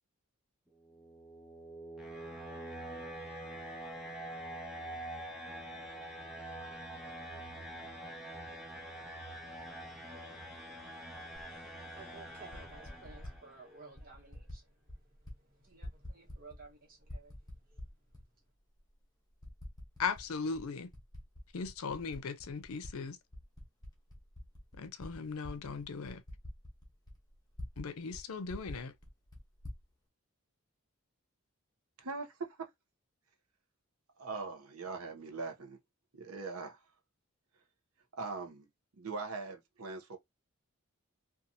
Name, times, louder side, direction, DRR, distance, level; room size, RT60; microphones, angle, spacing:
sound 1, 0.7-13.6, right 1 dB, 5° right, 0.5 m, -45 dB
Typing, 11.3-11.5 12.3-13.4 14.0-14.6 14.9-15.4 15.6-16.7 17.0-18.2 18.8-18.9 19.4-20.3 20.5-22.9 23.3-27.9 28.1-28.2 28.5-29.8, left 1 dB, 20° left, 0.9 m, -47 dB
voice 1, 11.5-17.8, right 3 dB, 40° right, 1.1 m, -56 dB
voice 2, 20.0-20.9 21.5-23.2 24.8-26.2 27.8-28.9, left 5 dB, 90° left, 0.5 m, -38 dB
voice 3, 32.0-32.7 34.2-35.8 36.1-36.8 38.2-38.7 38.9-40.2, right 4 dB, 90° right, 0.7 m, -41 dB
2.7 x 2.4 x 2.6 m
head